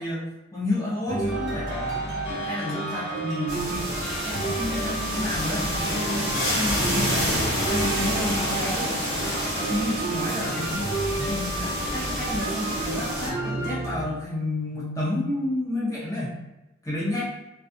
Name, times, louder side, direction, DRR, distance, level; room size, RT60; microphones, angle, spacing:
voice 1, 0.0-2.1 2.4-8.9 9.7-16.4 16.8-17.2, left 1 dB, 15° left, -8 dB, 0.5 m, -30 dB
sound 1, 1.1-14.0, right 2 dB, 50° right, 0.7 m, -31 dB
sound 2, 1.3-10.9, left 2 dB, 60° left, 0.6 m, -37 dB
sound 3, 3.5-13.3, equal, 15° right, 1.2 m, -29 dB
2.5 x 2.3 x 2.4 m, 1.0 s
head